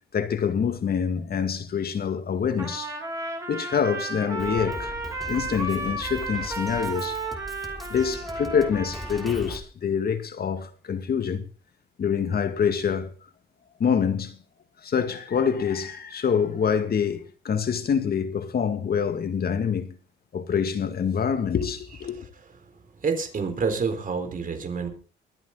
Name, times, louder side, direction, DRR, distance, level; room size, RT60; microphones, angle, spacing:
voice 1, 0.1-2.9 3.5-4.9 5.3-7.2 7.9-11.4 12.0-13.1 13.8-14.4 14.8-20.0 20.3-22.3, left 7 dB, 50° left, 2.1 m, -26 dB
Trumpet, 2.6-9.3, right 2 dB, 15° right, 4.3 m, -33 dB
Drum kit, 4.4-9.6, equal, ahead, 3.5 m, -39 dB
voice 2, 22.6-24.9, right 5 dB, 45° right, 4.0 m, -28 dB
23.5 x 9.1 x 3.9 m
cardioid pair, 90°, 20 cm